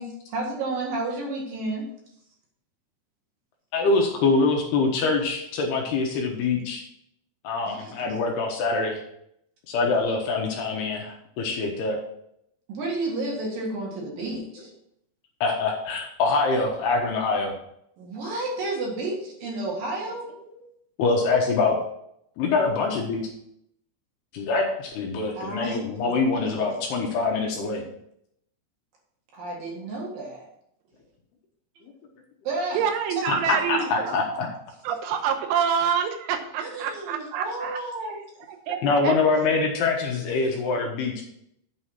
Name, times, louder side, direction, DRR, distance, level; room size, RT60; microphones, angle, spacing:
voice 1, 0.0-1.9 7.7-8.1 12.7-14.7 18.0-20.3 25.3-26.2 26.4-26.6 29.4-30.5 32.4-32.8 33.2-33.3 36.6-38.2, right 2 dB, 55° right, -2 dB, 3.0 m, -31 dB
voice 2, 3.7-6.8 7.4-9.0 9.7-12.0 15.4-17.6 21.0-21.8 22.4-23.2 24.3-27.8 33.3-34.5 38.8-41.2, left 3 dB, 70° left, 1 dB, 2.7 m, -24 dB
voice 3, 32.7-34.2 34.8-37.8 38.5-39.2, right 7 dB, 90° right, 6 dB, 3.4 m, -27 dB
8.8 x 4.8 x 5.7 m, 0.75 s
omnidirectional pair, 5.5 m